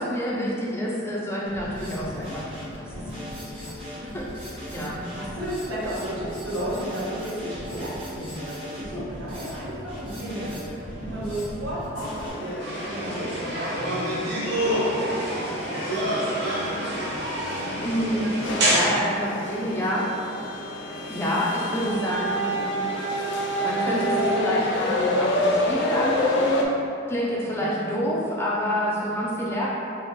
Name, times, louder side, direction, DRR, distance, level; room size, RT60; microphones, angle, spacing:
voice 1, 0.0-3.5 4.0-5.0 17.8-18.4 18.7-20.1 21.1-22.7 23.6-26.7 27.1-29.7, equal, 10° left, -5 dB, 0.5 m, -28 dB
Drum kit, 1.5-12.3, left 1 dB, 25° right, 1.1 m, -38 dB
voice 2, 4.9-14.2 14.5-15.8 16.1-16.6 27.4-27.8, right 1 dB, 75° right, -10 dB, 1.3 m, -34 dB
sound 1, 12.0-26.7, left 1 dB, 60° left, 0.4 m, -29 dB
sound 2, 12.6-18.8, right 1 dB, 55° right, 0.8 m, -27 dB
3.4 x 2.4 x 4.2 m, 2.6 s
head